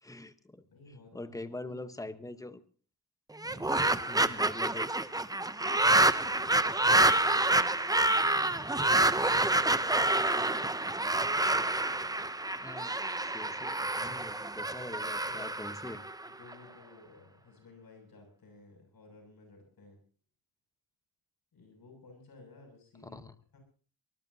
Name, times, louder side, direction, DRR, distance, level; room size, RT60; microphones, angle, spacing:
voice 1, 0.0-0.6 1.1-2.6 4.1-5.1 12.6-16.1 23.0-23.3, left 2 dB, 10° left, 11 dB, 1.2 m, -43 dB
voice 2, 0.7-1.7 3.4-4.3 5.6-8.0 8.4-10.7 14.6-15.0 15.2-15.5 16.3-20.0 21.5-23.2 23.5-23.6, left 3 dB, 55° left, 2 dB, 7.8 m, -55 dB
sound 1, 3.4-16.5, right 2 dB, 10° right, 0.7 m, -28 dB
23.5 x 20.0 x 2.9 m, 0.41 s
cardioid pair, 120°, 42 cm